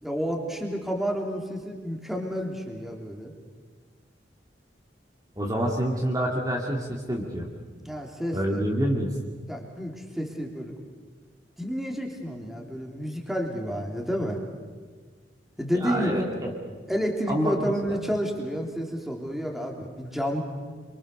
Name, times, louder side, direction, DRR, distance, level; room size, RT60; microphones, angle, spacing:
voice 1, 0.0-3.3 7.8-8.6 9.5-10.7 11.6-14.4 15.6-16.2 16.9-20.4, equal, ahead, 1 dB, 3.2 m, -30 dB
voice 2, 5.4-7.5 8.3-9.1 15.7-16.5 17.3-17.7, equal, 20° right, -1 dB, 2.5 m, -27 dB
26.5 x 24.5 x 6.7 m, 1.5 s
head